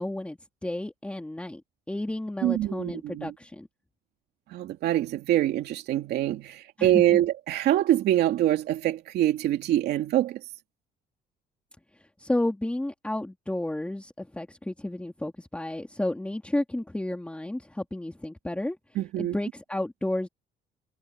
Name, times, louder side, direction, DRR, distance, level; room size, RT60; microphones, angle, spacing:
voice 1, 0.0-1.6 1.9-3.7 6.8-7.2 12.2-18.8 19.2-20.3, left 1 dB, 5° left, 2.4 m, -32 dB
voice 2, 2.4-3.3 4.5-10.4 19.0-19.3, right 13 dB, 75° right, 2.8 m, -25 dB
cardioid pair, 110°, 17 cm